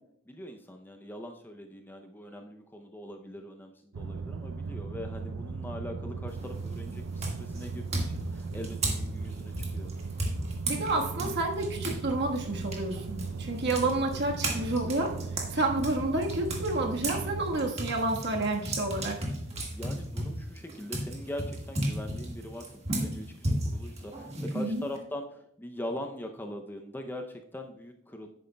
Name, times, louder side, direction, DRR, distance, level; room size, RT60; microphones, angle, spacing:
voice 1, 0.3-9.9 13.8-14.2 19.6-28.3, left 1 dB, 10° left, 4 dB, 0.5 m, -42 dB
sound 1, 3.9-17.7, right 4 dB, 75° right, 0.4 m, -38 dB
sound 2, 6.3-6.7 7.2-12.0 12.4-17.2 17.6-25.0, right 1 dB, 30° right, 1.6 m, -34 dB
voice 2, 10.7-15.1 15.5-19.2 24.5-24.8, right 2 dB, 50° right, 1 dB, 1.3 m, -29 dB
11.0 x 9.1 x 2.2 m, 0.74 s
head